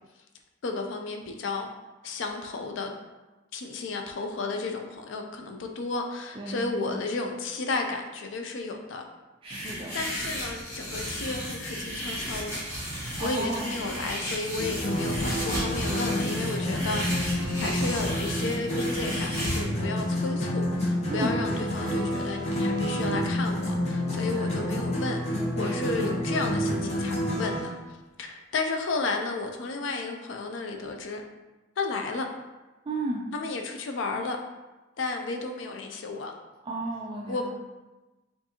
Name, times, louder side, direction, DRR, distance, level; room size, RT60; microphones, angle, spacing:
voice 1, 0.6-1.7 2.0-2.9 3.5-9.0 9.6-12.6 13.2-25.2 25.5-27.7 28.2-31.2 31.8-32.3 33.3-34.4 35.0-36.3 37.3-37.5, left 3 dB, 80° left, 4 dB, 0.4 m, -33 dB
voice 2, 6.3-7.0 9.4-10.0 13.2-13.7 21.1-21.3 24.3-24.6 25.6-25.9 32.9-33.2 36.6-37.5, right 2 dB, 30° right, -4 dB, 0.4 m, -34 dB
sound 1, 9.5-19.6, equal, 15° left, 1.4 m, -34 dB
sound 2, 14.6-27.7, equal, 35° left, 0.9 m, -29 dB
4.5 x 2.6 x 2.8 m, 1.1 s
head